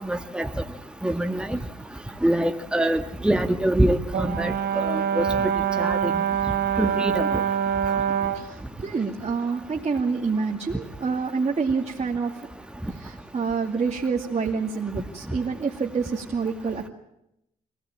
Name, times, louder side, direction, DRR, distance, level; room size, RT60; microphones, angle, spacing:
voice 1, 0.1-0.5 1.0-1.6 2.2-5.2 5.8-6.1 6.8-7.2, right 1 dB, 5° right, 6 dB, 1.7 m, -24 dB
Brass instrument, 4.1-8.5, right 7 dB, 80° right, 1.1 m, -25 dB
voice 2, 8.3-12.4 12.9-16.9, right 5 dB, 45° right, -1 dB, 2.5 m, -27 dB
25.0 x 16.5 x 8.8 m, 0.81 s
cardioid pair, 60°, 16 cm